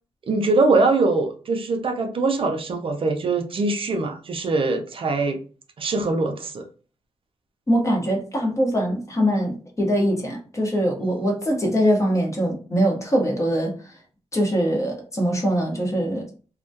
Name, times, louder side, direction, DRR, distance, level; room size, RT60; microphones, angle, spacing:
voice 1, 0.3-5.4 5.8-6.6, right 3 dB, 55° right, 0.5 m, -22 dB
voice 2, 7.7-13.8 14.3-16.3, equal, 25° left, 0.9 m, -22 dB
2.2 x 2.2 x 2.6 m
cardioid pair, 75°, 11 cm